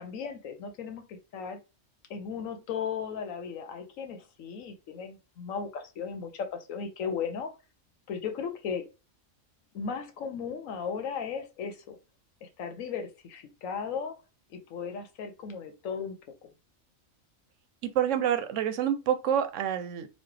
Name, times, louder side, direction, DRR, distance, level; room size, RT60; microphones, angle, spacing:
voice 1, 0.0-1.6 2.1-7.5 8.1-8.9 9.7-12.0 12.4-14.1 14.5-16.5, left 6 dB, 85° left, 1.1 m, -36 dB
voice 2, 17.8-20.1, right 9 dB, 75° right, 0.9 m, -27 dB
4.2 x 2.3 x 3.2 m
omnidirectional pair, 1.3 m